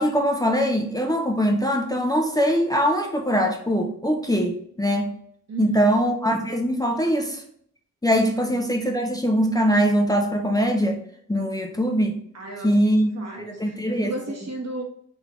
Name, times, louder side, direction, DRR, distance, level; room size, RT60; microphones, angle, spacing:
voice 1, 0.0-5.2 5.6-7.4 8.0-11.0 11.3-12.2 12.6-13.1 13.6-14.1, equal, 15° left, 2 dB, 0.5 m, -22 dB
voice 2, 5.5-6.0 8.3-8.6 12.3-14.8, right 2 dB, 60° right, 1 dB, 1.1 m, -35 dB
3.9 x 3.5 x 3.0 m, 0.63 s
wide cardioid pair, 115°, 30 cm